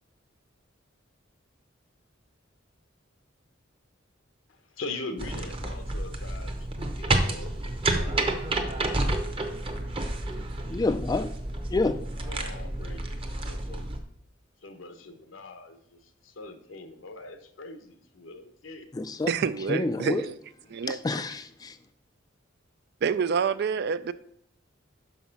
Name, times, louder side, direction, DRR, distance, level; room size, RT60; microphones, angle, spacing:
voice 1, 4.8-8.2 12.3-13.9 14.6-18.8, left 2 dB, 80° left, 1.0 m, -42 dB
sound 1, 5.2-14.0, right 2 dB, 30° right, 0.8 m, -30 dB
voice 2, 10.7-11.3 11.7-12.0 18.9-19.3 19.7-20.2 20.9-21.8, left 3 dB, 20° left, 0.3 m, -28 dB
voice 3, 19.3-20.4 20.7-21.3 23.0-24.1, right 6 dB, 55° right, 0.4 m, -28 dB
6.1 x 5.6 x 5.8 m
head